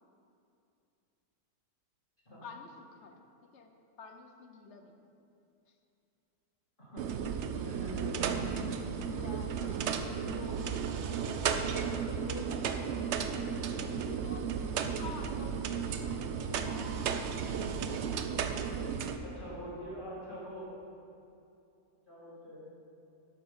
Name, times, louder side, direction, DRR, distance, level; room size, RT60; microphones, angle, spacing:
voice 1, 2.4-3.7 4.0-5.0 9.1-9.6 10.3-13.3 13.6-14.5 15.0-17.7, left 4 dB, 55° left, 4 dB, 0.9 m, -50 dB
sound 1, 7.0-19.2, right 7 dB, 75° right, 0.6 m, -34 dB
voice 2, 7.6-8.4 9.6-9.7 19.2-20.7 22.1-22.6, right 1 dB, 30° left, -10 dB, 2.2 m, -43 dB
11.5 x 6.4 x 5.5 m, 2.7 s
omnidirectional pair, 1.8 m